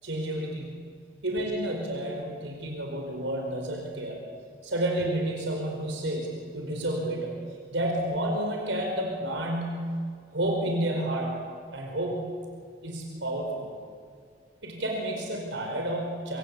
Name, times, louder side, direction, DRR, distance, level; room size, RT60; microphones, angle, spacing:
voice 1, 0.0-0.7 1.2-4.2 4.6-7.4 7.7-9.9 10.3-11.3 11.7-12.2 12.8-13.7 14.6-16.4, right 1 dB, 80° right, 1 dB, 4.8 m, -30 dB
26.5 x 25.5 x 8.4 m, 2.1 s
head